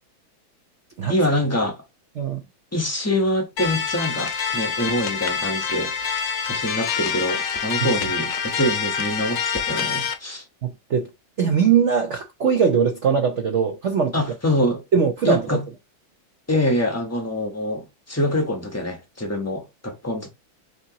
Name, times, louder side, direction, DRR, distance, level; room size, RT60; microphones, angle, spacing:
voice 1, 1.1-1.8 2.7-5.9 6.4-10.4 14.1-14.8 15.2-15.6 16.5-20.3, left 1 dB, 15° left, 0.5 m, -25 dB
sound 1, 3.6-10.1, left 6 dB, 70° left, 1.5 m, -26 dB
voice 2, 10.6-11.1 11.4-14.2 14.9-15.4, right 6 dB, 80° right, 0.6 m, -20 dB
6.4 x 2.9 x 2.8 m
omnidirectional pair, 2.1 m